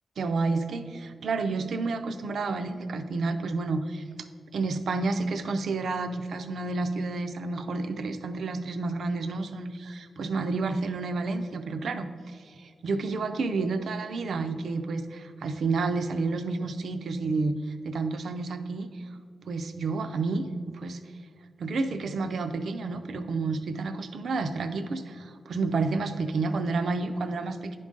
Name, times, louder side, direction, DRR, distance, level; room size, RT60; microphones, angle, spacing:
voice 1, 0.2-0.8 1.2-4.0 4.5-19.1 19.5-21.0 21.6-27.8, right 3 dB, 75° right, 8 dB, 0.4 m, -30 dB
10.5 x 3.8 x 3.7 m, 2.1 s
wide cardioid pair, 100°, 0 cm